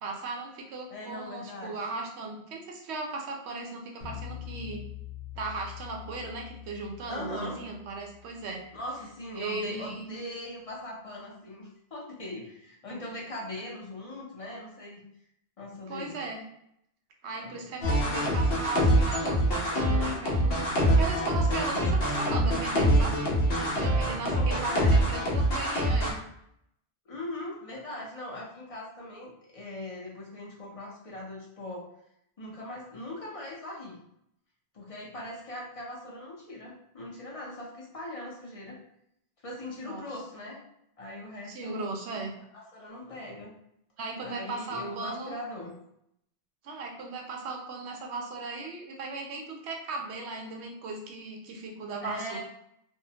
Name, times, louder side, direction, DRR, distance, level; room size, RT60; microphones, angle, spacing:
voice 1, 0.0-4.8 5.4-8.6 9.4-10.1 15.9-16.4 17.2-23.2 23.8-26.1 39.7-40.0 41.5-42.3 44.0-45.4 46.6-52.4, right 3 dB, 85° right, 1 dB, 0.9 m, -37 dB
voice 2, 0.9-1.8 7.1-7.7 8.7-15.0 15.6-16.2 17.4-17.6 24.2-25.0 27.1-31.9 32.4-34.0 34.7-38.8 39.4-40.6 41.0-41.9 42.5-43.5 44.2-45.8 52.0-52.4, left 1 dB, 40° left, -3 dB, 0.6 m, -40 dB
sound 1, 4.0-9.3, left 12 dB, 90° left, 1.0 m, -44 dB
sound 2, 17.8-26.1, equal, 65° left, 0.9 m, -25 dB
2.7 x 2.0 x 2.7 m, 0.74 s
omnidirectional pair, 1.1 m